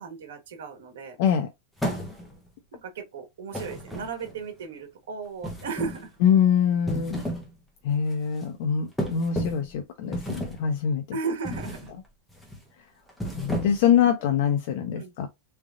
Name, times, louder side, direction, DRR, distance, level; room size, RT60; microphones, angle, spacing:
voice 1, 0.0-1.2 2.7-6.1 11.1-11.9 14.9-15.3, right 5 dB, 85° right, 1.3 m, -35 dB
sound 1, 1.8-2.5 3.5-4.4 5.4-6.1 6.7-7.5 7.9-8.1 9.0-9.7 10.1-10.7 11.4-11.9 12.3-12.6 13.1-14.0, equal, ahead, 0.8 m, -32 dB
voice 2, 6.2-7.2 7.8-11.0 13.3-15.3, left 8 dB, 40° left, 0.6 m, -24 dB
3.7 x 3.3 x 2.5 m
supercardioid pair, 180°, 0 cm